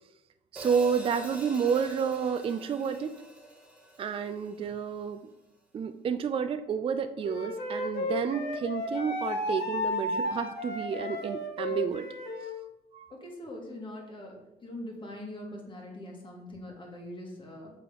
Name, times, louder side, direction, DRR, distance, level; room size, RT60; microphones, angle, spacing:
voice 1, 0.5-3.1 4.0-5.2 5.7-12.1 12.9-13.1, right 6 dB, 35° right, 9 dB, 0.4 m, -30 dB
Hi-hat, 0.6-4.8, right 1 dB, 5° right, 1.4 m, -45 dB
Wind instrument woodwind instrument, 7.2-12.5, left 1 dB, 65° left, 1.8 m, -33 dB
voice 2, 13.1-17.7, left 1 dB, 30° left, 0 dB, 2.0 m, -42 dB
6.8 x 3.6 x 5.0 m, 0.89 s
cardioid pair, 110°, 17 cm